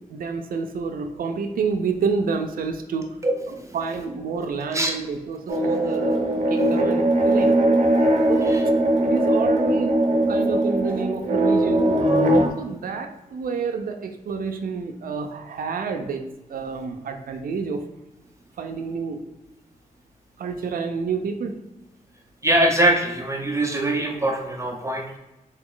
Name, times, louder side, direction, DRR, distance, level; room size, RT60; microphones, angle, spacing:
voice 1, 0.0-3.2 3.7-7.6 8.3-8.6 9.0-10.0 10.3-12.1 12.6-16.2 16.5-17.9 18.6-19.2 20.4-21.5, right 5 dB, 85° right, 5 dB, 0.5 m, -29 dB
voice 2, 3.2-3.8 4.7-4.9 8.5-8.6 22.4-25.2, right 1 dB, 20° right, 2 dB, 0.5 m, -23 dB
sound 1, 5.5-12.5, right 1 dB, 60° right, 0.8 m, -20 dB
3.9 x 3.0 x 3.7 m, 0.97 s
wide cardioid pair, 145°, 14 cm